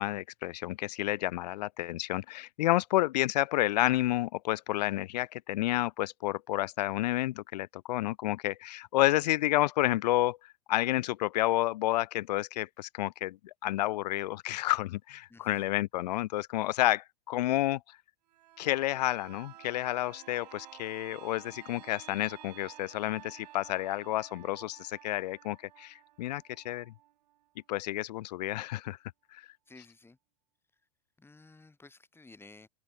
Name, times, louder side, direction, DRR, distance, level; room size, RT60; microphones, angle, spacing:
voice 1, 0.0-10.4 10.7-17.8 18.6-26.9 27.7-29.0 29.3-29.4, left 16 dB, 75° left, 0.4 m, -30 dB
voice 2, 15.3-15.7 29.7-30.2 31.2-32.7, left 3 dB, 10° left, 4.9 m, -54 dB
sound 1, 18.3-27.9 28.2-28.3, right 14 dB, 75° right, 1.6 m, -53 dB
hypercardioid pair, 95°, 21 cm